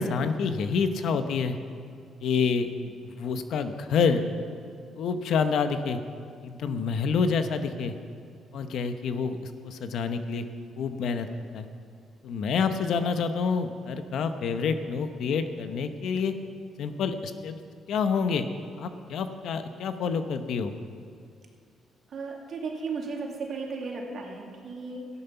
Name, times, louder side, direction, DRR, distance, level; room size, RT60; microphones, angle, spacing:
voice 1, 0.0-1.6 2.2-2.7 3.2-4.2 5.0-6.0 6.4-7.9 8.5-10.4 10.8-11.3 11.5-11.7 12.2-16.3 16.8-17.6 17.9-18.5 18.8-20.7, left 5 dB, 75° left, 9 dB, 0.9 m, -27 dB
voice 2, 22.1-25.1, right 4 dB, 60° right, 0 dB, 2.4 m, -35 dB
14.0 x 11.0 x 5.8 m, 2.3 s
cardioid pair, 90°, 0 cm